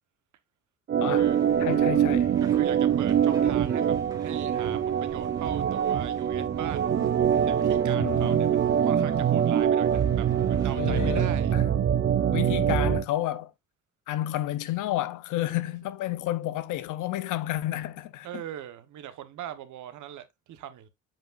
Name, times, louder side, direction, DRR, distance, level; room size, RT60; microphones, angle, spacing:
Organ, 0.9-13.0, right 9 dB, 40° right, 0.5 m, -24 dB
voice 1, 1.0-1.3 1.6-2.3 7.0-7.1 8.0-8.5 10.8-11.6 12.3-13.5 14.1-18.4, left 14 dB, 90° left, 0.7 m, -31 dB
sound 1, 1.1-11.4, right 2 dB, 10° right, 1.6 m, -50 dB
voice 2, 2.4-6.9 7.5-11.5 18.2-20.9, right 10 dB, 75° right, 1.0 m, -40 dB
7.4 x 5.4 x 2.4 m
cardioid pair, 90°, 30 cm